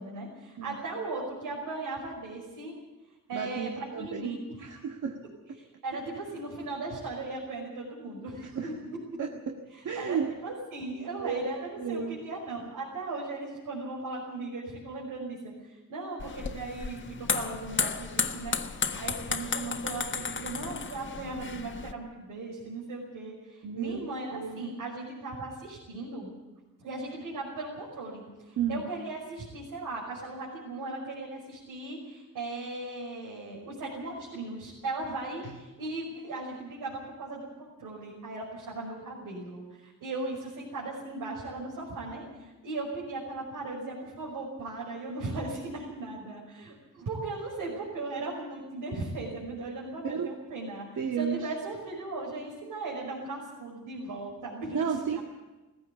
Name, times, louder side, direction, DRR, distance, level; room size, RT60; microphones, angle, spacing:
voice 1, 0.0-2.8 3.3-4.9 5.6-9.2 9.7-26.3 26.8-37.5 37.8-50.8 51.2-55.2, right 2 dB, 85° right, -4 dB, 5.7 m, -37 dB
voice 2, 3.3-4.3 4.6-5.2 8.4-8.7 9.2-9.5 9.8-10.3 11.2-11.4 11.8-12.2 23.6-24.0 24.3-24.6 28.6-28.8 35.4-35.5 50.0-50.3 51.0-51.5 54.7-55.2, right 7 dB, 65° right, 2 dB, 1.9 m, -32 dB
sound 1, 16.2-21.9, left 5 dB, 35° left, 1.4 m, -33 dB
19.5 x 16.0 x 8.5 m, 1.2 s
cardioid pair, 95°, 32 cm